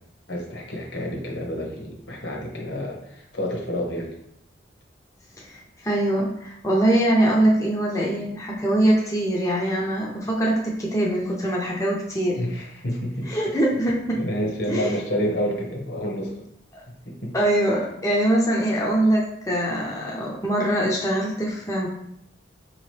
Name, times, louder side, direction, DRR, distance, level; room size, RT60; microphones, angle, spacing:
voice 1, 0.3-4.1 12.3-13.6 14.1-16.4 17.1-17.3, equal, 70° left, 0 dB, 0.9 m, -29 dB
voice 2, 5.4-12.4 13.2-14.2 14.7-15.0 16.7-16.8 17.3-21.9, right 1 dB, 15° left, -3 dB, 0.5 m, -23 dB
4.8 x 2.8 x 3.1 m, 0.76 s
head